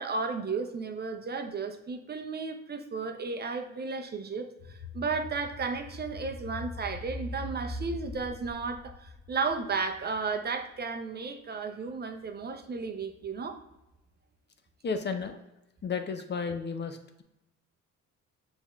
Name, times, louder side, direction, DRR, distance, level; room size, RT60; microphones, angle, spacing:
voice 1, 0.0-13.6, right 4 dB, 35° right, 6 dB, 0.5 m, -34 dB
sound 1, 4.6-10.2 10.6-10.7, left 1 dB, 55° left, 1.1 m, -42 dB
voice 2, 14.8-15.4 15.8-17.2, left 5 dB, 35° left, 7 dB, 0.5 m, -33 dB
6.2 x 3.5 x 2.3 m, 0.92 s
cardioid pair, 90°, 30 cm